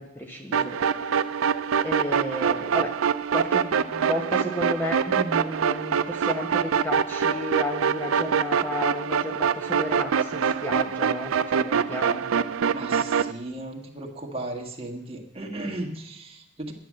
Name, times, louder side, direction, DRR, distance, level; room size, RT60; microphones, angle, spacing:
voice 1, 0.0-3.0 3.3-12.3, left 1 dB, 10° left, 2 dB, 1.0 m, -33 dB
sound 1, 0.5-13.3, right 7 dB, 85° right, 0.5 m, -25 dB
voice 2, 12.7-16.7, right 1 dB, 30° right, 1 dB, 1.8 m, -36 dB
11.0 x 9.6 x 7.6 m, 0.88 s
head